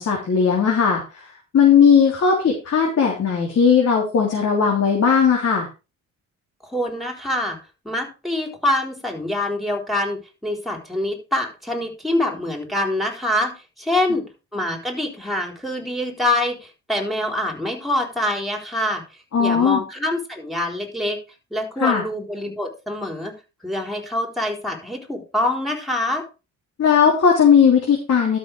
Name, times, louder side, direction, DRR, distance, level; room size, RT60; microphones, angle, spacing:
voice 1, 0.0-5.7 19.3-19.8 21.8-22.0 26.8-28.4, left 6 dB, 55° left, 0 dB, 3.4 m, -17 dB
voice 2, 6.6-7.6 7.8-14.2 14.5-19.0 19.4-21.2 21.5-23.3 23.6-26.3, left 1 dB, ahead, 3 dB, 4.1 m, -25 dB
12.5 x 6.5 x 4.8 m, 0.30 s
cardioid pair, 90°, 30 cm